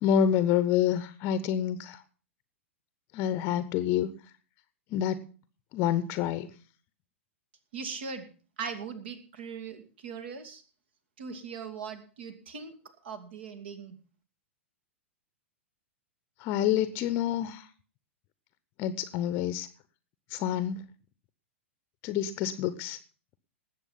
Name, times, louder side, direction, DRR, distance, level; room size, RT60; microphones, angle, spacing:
voice 1, 0.0-2.0 3.1-4.1 4.9-5.2 5.7-6.5 16.4-17.7 18.8-19.7 20.3-20.8 22.0-23.0, left 9 dB, 35° left, 14 dB, 0.8 m, -27 dB
voice 2, 7.7-8.3 8.6-10.6 11.2-12.7 13.0-13.9, right 5 dB, 55° right, 9 dB, 2.3 m, -39 dB
19.0 x 7.6 x 5.6 m, 0.38 s
figure-of-eight pair, 100°, 7 cm